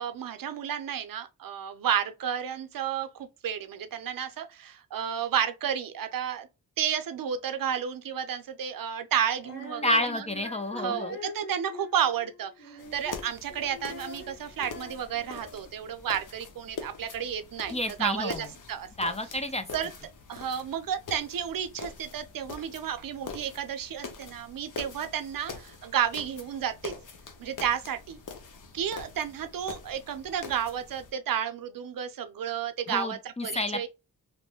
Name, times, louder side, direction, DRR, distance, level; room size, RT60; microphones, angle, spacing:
voice 1, 0.0-6.5 6.8-10.3 10.7-18.9 19.7-19.9 20.3-27.0 27.4-28.2 28.7-33.9, right 9 dB, 75° right, 0.5 m, -32 dB
Female singing, 9.4-15.8, left 2 dB, 35° left, 1.2 m, -44 dB
voice 2, 9.8-11.1 17.7-18.5 19.0-19.7 32.9-33.9, left 2 dB, 20° left, 0.4 m, -30 dB
sound 1, 12.8-31.1, left 5 dB, 60° left, 0.7 m, -44 dB
3.0 x 2.1 x 2.8 m
cardioid pair, 60°, 35 cm